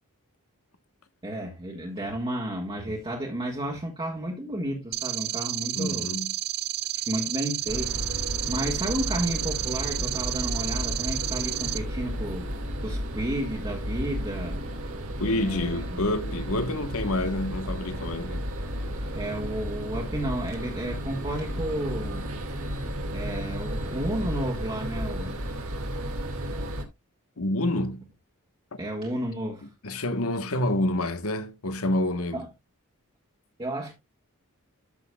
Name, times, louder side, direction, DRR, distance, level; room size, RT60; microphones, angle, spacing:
voice 1, 1.2-6.1 6.9-12.5 12.8-14.6 15.3-16.0 19.1-22.3 23.1-25.4 28.8-29.7 32.3-32.4 33.6-33.9, right 1 dB, 25° right, 1.6 m, -32 dB
sound 1, 4.9-11.8, right 14 dB, 50° right, 0.6 m, -31 dB
voice 2, 5.7-6.3 15.2-18.4 27.4-28.0 28.7-28.8 29.6-32.5, left 1 dB, 70° left, 1.2 m, -28 dB
sound 2, 7.7-26.8, equal, 65° right, 2.1 m, -33 dB
13.5 x 6.3 x 2.3 m
head